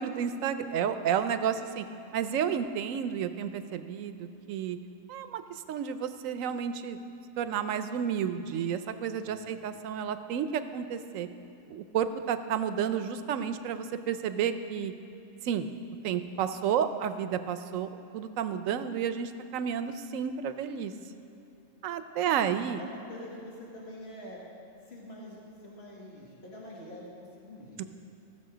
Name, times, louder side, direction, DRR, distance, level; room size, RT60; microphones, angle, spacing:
voice 1, 0.0-1.8 2.1-4.8 5.1-5.4 5.7-7.0 7.4-11.3 11.7-14.9 15.4-15.7 16.0-17.9 18.1-20.9 21.8-22.8 27.8-27.9, right 8 dB, 90° right, 10 dB, 1.0 m, -31 dB
voice 2, 9.2-9.6 22.3-22.5 22.8-24.4 24.9-27.8, left 1 dB, 50° left, -4 dB, 2.0 m, -46 dB
16.0 x 6.9 x 5.0 m, 2.8 s
omnidirectional pair, 1.3 m